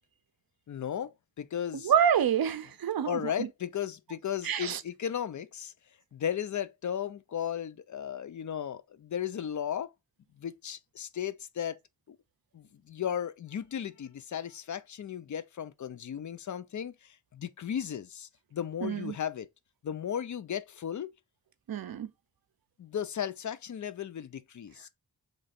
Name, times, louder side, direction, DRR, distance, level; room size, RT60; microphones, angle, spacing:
voice 1, 0.7-1.9 3.1-5.7 6.1-9.9 10.4-11.8 12.1-12.2 12.5-19.5 19.8-21.1 22.8-24.9, left 9 dB, 50° left, 0.5 m, -35 dB
voice 2, 1.7-3.5 4.4-4.8 18.8-19.1 21.7-22.1, right 8 dB, 70° right, 0.6 m, -27 dB
3.2 x 2.4 x 4.0 m
cardioid pair, 55°, 37 cm